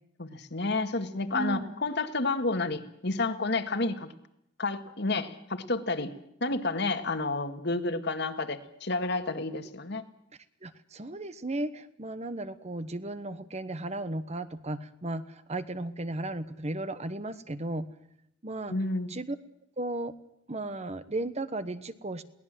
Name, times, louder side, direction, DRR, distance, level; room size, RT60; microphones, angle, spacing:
voice 1, 0.2-4.1 4.6-6.1 6.4-10.0 18.7-19.1, left 3 dB, 60° left, 8 dB, 2.0 m, -30 dB
voice 2, 1.3-1.7 10.6-17.9 18.4-18.7 19.1-19.3 19.8-20.1 20.5-22.2, right 2 dB, 35° right, 12 dB, 1.2 m, -35 dB
22.0 x 18.5 x 7.7 m, 0.79 s
head